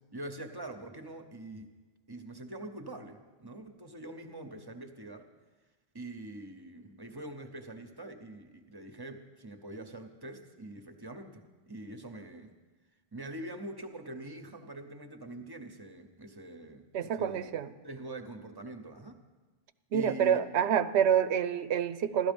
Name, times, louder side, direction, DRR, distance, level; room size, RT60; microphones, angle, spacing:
voice 1, 0.1-1.7 2.1-5.3 5.9-12.5 13.1-17.5 17.8-19.2 19.9-20.4, right 1 dB, 25° right, 7 dB, 0.9 m, -44 dB
voice 2, 16.9-17.7 19.9-22.3, right 8 dB, 90° right, 12 dB, 0.9 m, -27 dB
15.5 x 12.5 x 5.2 m, 1.3 s
omnidirectional pair, 1.1 m